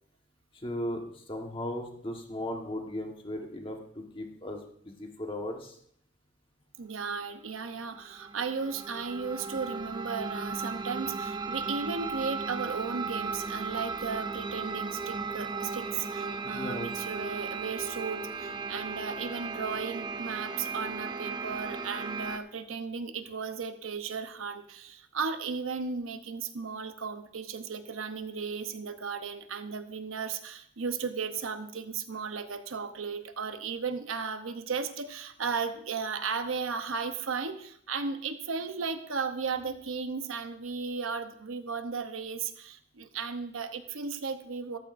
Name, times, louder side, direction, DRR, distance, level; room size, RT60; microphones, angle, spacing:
voice 1, 0.6-5.8 16.4-16.9, left 1 dB, 25° left, 2 dB, 1.4 m, -37 dB
voice 2, 6.8-44.8, right 5 dB, 90° right, 9 dB, 0.8 m, -35 dB
sound 1, 7.6-22.4, right 4 dB, 20° right, 0.4 m, -36 dB
14.0 x 12.5 x 2.6 m, 0.66 s
head